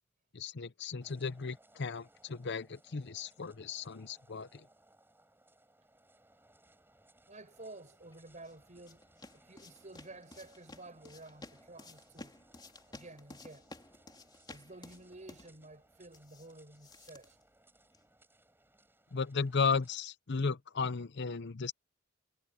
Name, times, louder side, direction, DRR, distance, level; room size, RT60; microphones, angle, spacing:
voice 1, 0.3-4.6 19.1-21.7, left 5 dB, 55° left, 0.7 m, -35 dB
sound 1, 1.0-19.9, right 1 dB, 10° right, 5.7 m, -66 dB
voice 2, 7.3-9.0 9.3-12.4 12.9-13.8 14.5-17.4, right 2 dB, 35° right, 5.2 m, -52 dB
sound 2, 8.1-18.1, left 2 dB, 20° left, 3.4 m, -55 dB
head